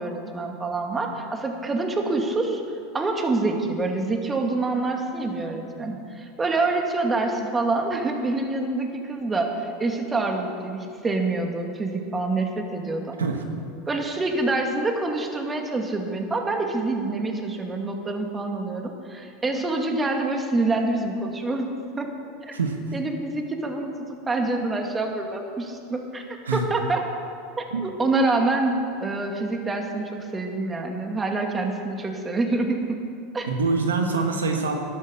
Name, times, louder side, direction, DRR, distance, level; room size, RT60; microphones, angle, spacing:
voice 1, 0.0-2.6 2.9-13.2 13.9-22.1 22.5-22.6 22.9-26.2 26.5-27.0 27.6-33.0 33.3-33.5, right 2 dB, 20° right, 3 dB, 2.2 m, -26 dB
voice 2, 33.5-34.8, right 4 dB, 90° right, 4 dB, 1.3 m, -24 dB
12.5 x 12.0 x 7.0 m, 2.5 s
hypercardioid pair, 90°, 0 cm